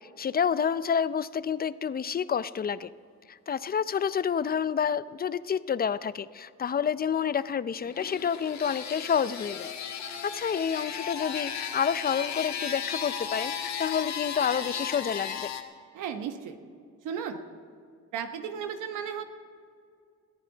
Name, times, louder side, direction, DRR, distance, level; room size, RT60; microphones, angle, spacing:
voice 1, 0.2-2.9 3.3-9.7 10.1-15.5, left 7 dB, 30° left, 16 dB, 0.5 m, -29 dB
sound 1, 7.8-15.6, left 7 dB, 65° left, 1.4 m, -35 dB
voice 2, 15.9-16.6 17.0-17.4 18.1-19.2, right 7 dB, 90° right, 6 dB, 1.2 m, -34 dB
20.5 x 14.0 x 4.0 m, 2.3 s
cardioid pair, 90°, 30 cm